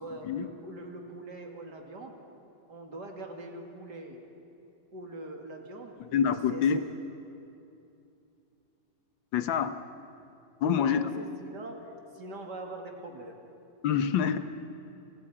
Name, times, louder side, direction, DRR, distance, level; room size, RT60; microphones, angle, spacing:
voice 1, 0.0-2.2 2.7-4.2 4.9-6.8 10.8-13.4, right 1 dB, 60° right, 2 dB, 2.8 m, -43 dB
voice 2, 6.1-6.8 9.3-9.8 10.6-11.2 13.8-14.4, left 7 dB, 90° left, 10 dB, 1.7 m, -26 dB
30.0 x 26.0 x 4.9 m, 2.7 s
omnidirectional pair, 2.0 m